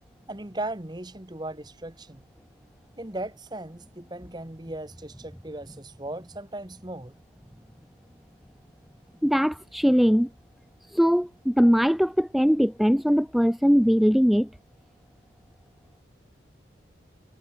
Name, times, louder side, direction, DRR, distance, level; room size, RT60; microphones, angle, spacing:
voice 1, 0.3-2.2 3.0-7.1, right 1 dB, 20° right, 1.2 m, -37 dB
voice 2, 9.2-10.3 10.9-14.5, equal, ahead, 0.4 m, -21 dB
head